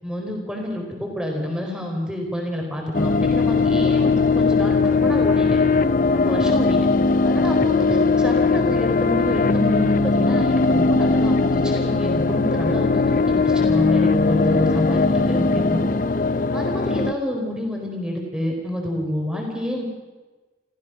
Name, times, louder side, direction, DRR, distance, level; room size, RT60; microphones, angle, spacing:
voice 1, 0.0-5.6 6.1-6.8 7.2-15.9 16.5-19.9, left 1 dB, 5° right, 1 dB, 4.4 m, -28 dB
sound 1, 2.9-17.1, left 4 dB, 45° left, 0.6 m, -19 dB
26.5 x 15.5 x 6.2 m, 1.2 s
head